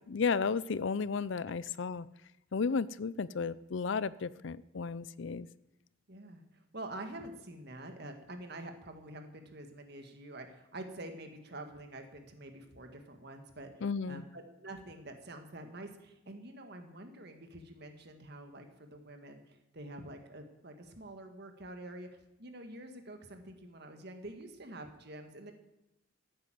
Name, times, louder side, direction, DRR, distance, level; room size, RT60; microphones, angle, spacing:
voice 1, 0.1-2.1 2.5-5.5 13.8-14.2, left 5 dB, 60° left, 18 dB, 0.5 m, -33 dB
voice 2, 6.1-13.7 14.1-22.1 22.4-25.5, right 1 dB, 50° right, 6 dB, 1.8 m, -47 dB
15.0 x 8.9 x 7.7 m, 0.90 s
head